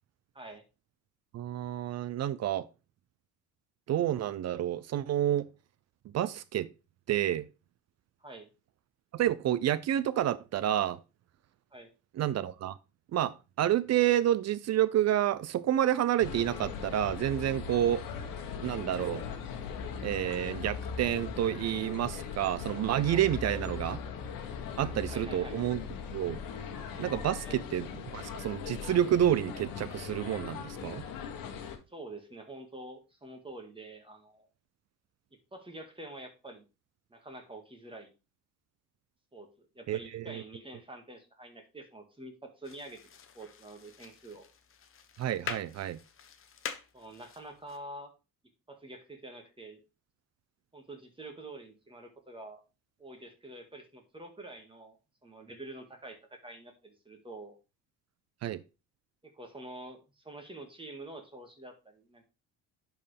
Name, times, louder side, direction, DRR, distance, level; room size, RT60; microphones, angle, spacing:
voice 1, 1.3-2.7 3.9-5.5 6.1-6.7 7.1-7.5 9.1-11.0 12.2-12.8 13.1-18.0 18.6-19.2 20.0-24.0 24.8-25.8 26.1-26.4 27.0-27.9 28.1-31.0 39.9-40.4 45.2-46.0 58.4-58.6, right 11 dB, 50° right, 0.5 m, -29 dB
sound 1, 16.2-31.8, left 6 dB, 70° left, 1.4 m, -39 dB
voice 2, 25.1-25.6 27.4-27.6 31.9-34.5 35.5-36.6 37.1-38.1 39.3-43.0 43.3-44.5 46.9-48.1 48.7-49.8 50.7-52.6 53.0-55.0 55.2-57.6 59.2-62.3, right 2 dB, 15° right, 1.8 m, -47 dB
sound 2, 42.6-47.8, left 6 dB, 35° left, 1.0 m, -45 dB
10.5 x 4.6 x 3.4 m
cardioid pair, 95°, 35 cm